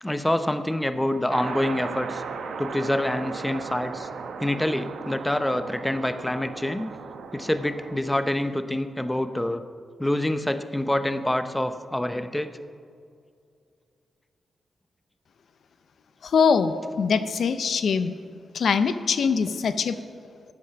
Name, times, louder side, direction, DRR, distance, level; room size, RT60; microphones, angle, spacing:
voice 1, 0.0-2.2 2.6-4.1 4.4-6.9 7.3-9.6 10.0-12.5, left 1 dB, 10° left, 10 dB, 0.7 m, -26 dB
sound 1, 1.3-8.0, right 5 dB, 80° right, 0.9 m, -36 dB
voice 2, 16.2-18.1 18.5-20.0, left 6 dB, 70° left, 11 dB, 0.6 m, -23 dB
14.0 x 9.6 x 5.8 m, 2.3 s
cardioid pair, 90°, 0 cm